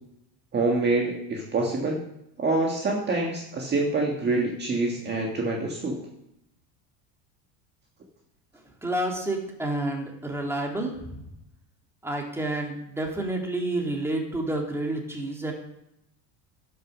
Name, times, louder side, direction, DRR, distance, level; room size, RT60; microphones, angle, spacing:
voice 1, 0.5-2.0 2.4-6.0, right 3 dB, 25° right, 0 dB, 1.7 m, -26 dB
voice 2, 8.8-11.2 12.0-15.5, right 1 dB, 5° right, 1 dB, 2.1 m, -29 dB
10.5 x 6.7 x 6.3 m, 0.81 s
supercardioid pair, 135°, 42 cm